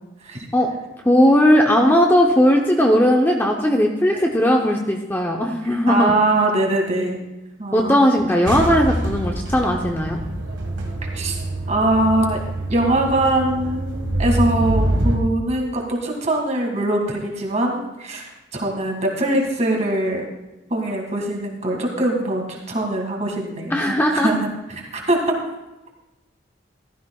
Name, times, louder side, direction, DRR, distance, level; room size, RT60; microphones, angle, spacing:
voice 1, 1.0-6.1 7.7-10.2 23.7-24.3, equal, 10° left, 1 dB, 0.7 m, -17 dB
voice 2, 5.9-7.2 7.6-8.1 11.1-11.4 11.7-12.4 12.7-20.2 20.7-25.3, right 1 dB, 35° right, 1 dB, 1.9 m, -22 dB
sound 1, 8.5-15.2, right 1 dB, 70° right, 1.7 m, -25 dB
15.0 x 12.5 x 2.3 m, 1.0 s
head